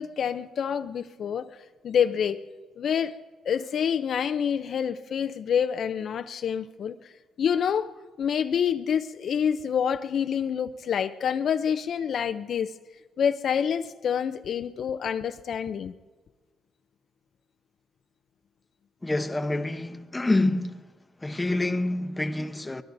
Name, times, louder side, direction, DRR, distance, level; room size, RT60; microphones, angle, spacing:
voice 1, 0.0-1.5 1.8-2.4 2.8-3.1 3.5-7.1 7.4-12.7 13.2-15.9, left 8 dB, 60° left, 0.5 m, -27 dB
voice 2, 19.0-20.9 21.2-22.8, left 2 dB, 15° left, 0.9 m, -27 dB
24.0 x 21.5 x 2.7 m
cardioid pair, 90°, 0 cm